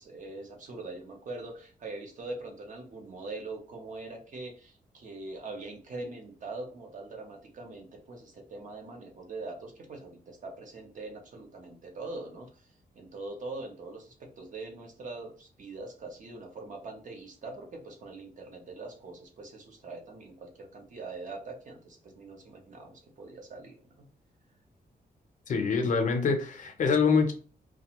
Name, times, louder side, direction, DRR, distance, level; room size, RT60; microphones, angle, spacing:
voice 1, 0.0-12.7 12.9-24.0, right 3 dB, 50° right, 2 dB, 0.7 m, -42 dB
voice 2, 25.5-27.3, left 5 dB, 50° left, 5 dB, 0.5 m, -25 dB
2.5 x 2.2 x 2.8 m, 0.39 s
wide cardioid pair, 160°, 16 cm